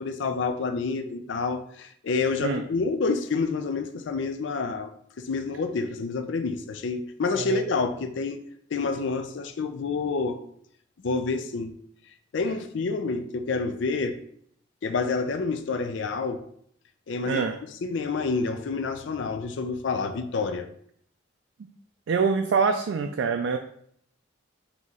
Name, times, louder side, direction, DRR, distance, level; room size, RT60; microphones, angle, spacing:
voice 1, 0.0-4.9 5.2-8.4 8.7-10.4 11.0-11.7 12.3-14.2 14.8-16.4 17.1-17.4 17.8-20.7, left 4 dB, 65° left, 0.4 m, -28 dB
voice 2, 17.3-17.6 22.1-23.6, right 5 dB, 70° right, 0.3 m, -25 dB
4.0 x 2.9 x 3.7 m
head